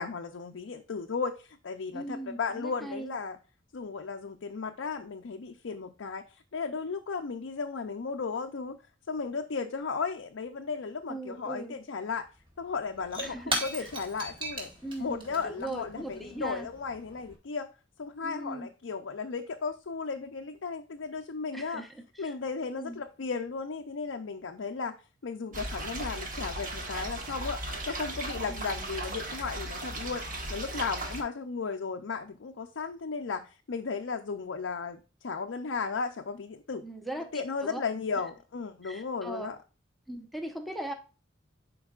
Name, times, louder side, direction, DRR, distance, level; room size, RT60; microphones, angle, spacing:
voice 1, 0.0-3.4 3.7-8.8 9.1-12.3 12.6-14.7 15.0-17.7 18.0-21.8 22.2-25.0 25.2-27.6 27.9-30.2 30.5-36.8 37.3-39.6, left 5 dB, 75° left, 3 dB, 0.5 m, -35 dB
voice 2, 1.9-3.1 11.1-11.7 13.2-13.9 14.8-16.7 18.2-18.7 21.5-22.3 22.7-23.0 28.5-28.9 36.8-37.8 38.8-39.5 40.1-40.9, right 1 dB, ahead, 4 dB, 0.9 m, -39 dB
Shatter / Crushing, 12.2-12.3 12.5-17.4, right 1 dB, 25° right, 1.9 m, -38 dB
sound 1, 25.5-31.2, right 1 dB, 45° right, 1.3 m, -37 dB
10.5 x 4.5 x 2.4 m, 0.32 s
head